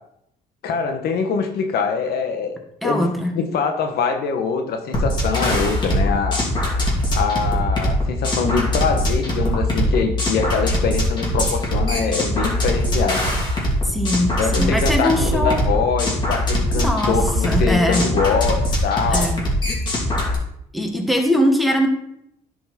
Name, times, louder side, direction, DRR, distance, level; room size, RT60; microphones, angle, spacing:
voice 1, 0.6-2.6 2.8-6.4 7.1-13.3 14.4-19.3, left 5 dB, 70° left, 6 dB, 1.1 m, -23 dB
voice 2, 2.8-3.4 13.8-15.6 16.8-17.2 17.4-18.1 19.1-19.4 20.7-21.9, equal, ahead, 2 dB, 1.4 m, -21 dB
sound 1, 4.9-20.3, left 1 dB, 25° left, 2.8 m, -22 dB
10.0 x 4.6 x 4.2 m, 0.76 s
cardioid pair, 110°, 17 cm